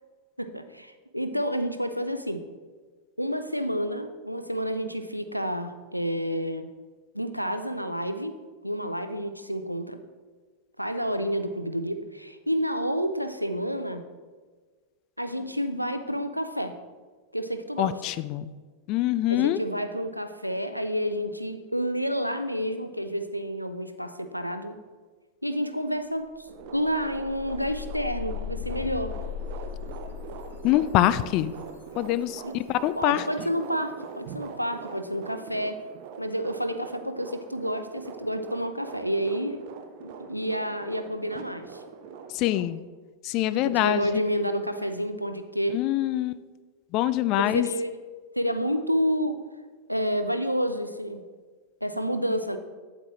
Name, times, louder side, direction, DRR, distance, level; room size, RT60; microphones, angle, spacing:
voice 1, 0.4-2.4 3.2-6.7 7.1-8.3 8.6-10.0 10.8-14.0 15.2-16.7 17.3-17.9 19.3-24.8 25.4-26.3 26.7-29.1 32.4-32.5 33.0-35.8 36.2-39.6 40.0-41.8 43.5-45.8 47.5-47.9 48.4-49.4 49.9-51.2 51.8-52.6, equal, 90° right, 9 dB, 0.5 m, -29 dB
voice 2, 17.8-18.5 18.9-19.6 30.6-31.5 32.0-33.2 42.3-42.8 43.2-44.2 45.7-46.4 46.9-47.7, left 14 dB, 40° left, 14 dB, 0.3 m, -24 dB
sound 1, 25.9-26.0 26.3-33.1, left 9 dB, 70° left, 1.2 m, -39 dB
sound 2, 26.5-42.6, right 6 dB, 50° right, 0.6 m, -43 dB
8.7 x 8.1 x 3.0 m, 1.4 s
figure-of-eight pair, 90°, 0 cm